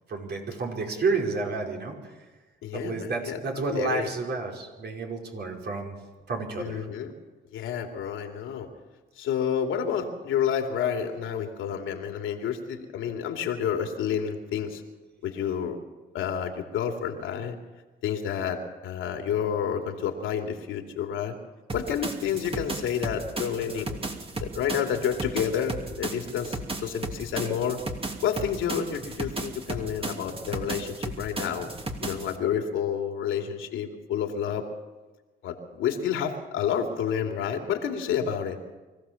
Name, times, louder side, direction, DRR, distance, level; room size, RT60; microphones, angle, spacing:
voice 1, 0.1-2.1 2.7-6.0 6.3-6.9, right 3 dB, 55° right, 1 dB, 5.2 m, -30 dB
voice 2, 2.6-3.4 3.7-4.1 6.6-7.1 7.5-8.7 9.2-14.8 15.2-15.8 16.1-17.5 18.0-21.4 21.7-24.0 24.4-27.8 28.2-31.7 32.0-34.6 35.4-38.6, left 8 dB, 85° left, 3 dB, 2.9 m, -29 dB
sound 1, 21.7-32.4, right 2 dB, 30° right, 2.8 m, -35 dB
25.0 x 15.5 x 7.2 m, 1.2 s
cardioid pair, 90°, 20 cm